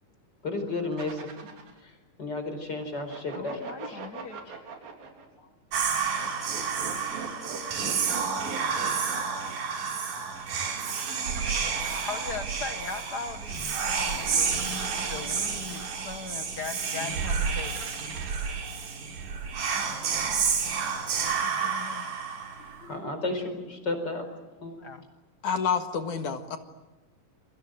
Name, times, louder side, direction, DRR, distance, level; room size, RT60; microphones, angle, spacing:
voice 1, 0.4-1.5 1.8-3.6 3.9-4.0 4.5-4.6 5.4-5.5 9.7-9.8 14.9-15.3 20.6-20.7 22.8-24.2 24.6-24.9, left 2 dB, 30° left, 7 dB, 5.0 m, -34 dB
sound 1, 0.9-1.8 2.8-5.3 6.1-9.5 10.3-12.7 13.4-15.9 16.8-18.8, right 5 dB, 90° right, 5.2 m, -42 dB
voice 2, 3.3-4.4 12.1-14.6 15.1-17.8 21.4-22.1 24.8-25.0, left 5 dB, 80° left, 7 dB, 0.9 m, -39 dB
Whispering, 5.7-22.8, right 6 dB, 70° right, 4.3 m, -30 dB
voice 3, 25.4-26.6, left 6 dB, 65° left, 6 dB, 3.0 m, -28 dB
29.0 x 23.5 x 7.7 m, 1.1 s
omnidirectional pair, 4.0 m